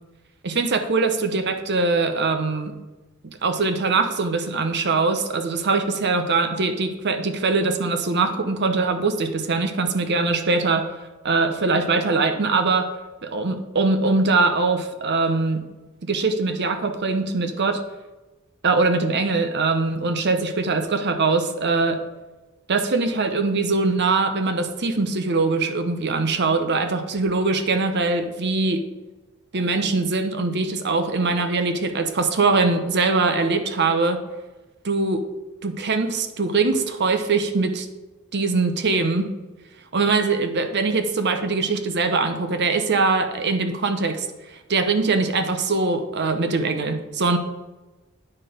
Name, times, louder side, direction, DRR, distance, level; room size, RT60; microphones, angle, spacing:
voice 1, 0.4-2.7 3.4-10.8 11.2-12.9 13.3-15.6 16.0-17.8 18.6-22.0 22.7-28.8 29.5-34.2 34.8-35.2 35.6-37.9 38.3-39.3 39.9-44.3 44.7-47.4, right 3 dB, 55° right, 8 dB, 0.8 m, -22 dB
9.6 x 4.5 x 5.0 m, 1.1 s
head